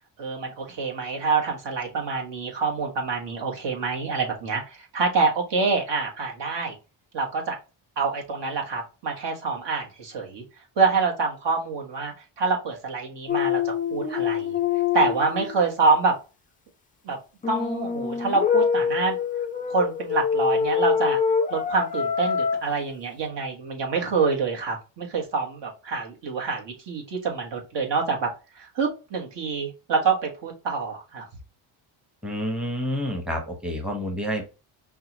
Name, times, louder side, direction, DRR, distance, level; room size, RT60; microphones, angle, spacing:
voice 1, 0.2-6.7 7.1-7.6 8.0-10.4 10.8-14.6 14.9-16.2 17.0-17.2 17.5-19.2 19.7-21.2 21.5-28.3 28.5-31.3, right 4 dB, 60° right, 1 dB, 1.4 m, -26 dB
sound 1, 13.3-15.6 17.4-22.6, left 7 dB, 20° left, 0.3 m, -25 dB
voice 2, 32.2-34.4, equal, ahead, 2 dB, 0.9 m, -28 dB
5.6 x 2.3 x 2.9 m, 0.30 s
cardioid pair, 110°, 48 cm